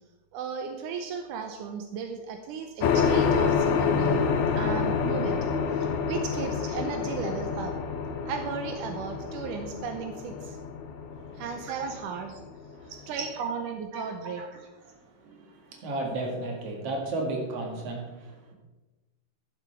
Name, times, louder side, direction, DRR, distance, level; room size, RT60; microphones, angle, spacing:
voice 1, 0.3-4.2 4.5-5.5 5.7-7.7 8.2-10.6 11.3-12.4 13.1-14.4, right 6 dB, 80° right, 5 dB, 1.8 m, -35 dB
sound 1, 2.8-12.9, left 6 dB, 85° left, 1.6 m, -28 dB
voice 2, 11.1-11.7 12.7-12.9 13.3-13.4 13.9-18.5, right 2 dB, 45° right, 1 dB, 2.5 m, -35 dB
11.0 x 10.5 x 4.5 m, 1.2 s
omnidirectional pair, 4.7 m